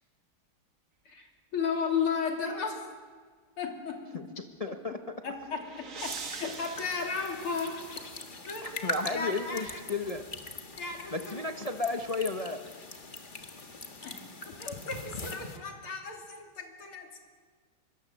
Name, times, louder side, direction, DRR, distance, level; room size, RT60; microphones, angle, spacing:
voice 1, 1.5-2.8 3.6-4.2 4.7-4.8 5.2-7.8 8.5-9.8 10.8-11.4 14.0-17.2, left 5 dB, 85° left, 2 dB, 3.9 m, -35 dB
voice 2, 4.6-5.2 8.6-10.2 11.1-12.6, left 3 dB, 45° left, 5 dB, 0.5 m, -33 dB
sound 1, 4.9-8.3, right 5 dB, 45° right, 1.5 m, -44 dB
sound 2, 6.1-15.6, left 2 dB, 25° left, 1.5 m, -42 dB
25.0 x 23.0 x 7.4 m, 1.5 s
omnidirectional pair, 2.3 m